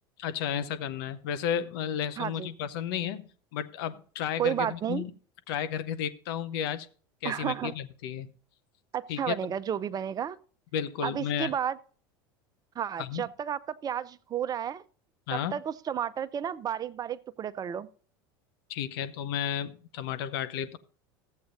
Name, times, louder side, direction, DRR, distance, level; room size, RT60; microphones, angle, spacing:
voice 1, 0.2-3.2 3.5-5.1 5.5-6.9 7.2-8.3 9.1-9.4 10.7-11.5 13.0-13.3 15.3-15.6 18.7-20.8, left 9 dB, 75° left, 0.8 m, -32 dB
voice 2, 2.2-2.5 4.4-5.0 7.2-7.7 8.9-10.4 11.0-11.8 12.8-14.8 15.3-17.9, right 9 dB, 30° right, 0.5 m, -32 dB
14.0 x 8.1 x 2.6 m
hypercardioid pair, 95°, 12 cm